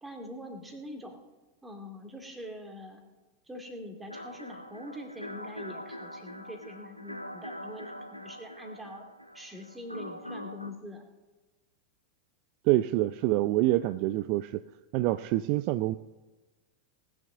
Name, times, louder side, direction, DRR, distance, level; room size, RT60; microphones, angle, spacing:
voice 1, 0.0-1.2 1.6-3.0 3.5-9.0 9.3-11.0, equal, 10° right, 4 dB, 2.3 m, -43 dB
sound 1, 4.1-10.7, equal, 90° left, 0.8 m, -43 dB
voice 2, 12.6-14.6 14.9-16.0, right 16 dB, 45° right, 14 dB, 0.4 m, -26 dB
19.0 x 6.9 x 6.6 m, 1.2 s
figure-of-eight pair, 90°, 0 cm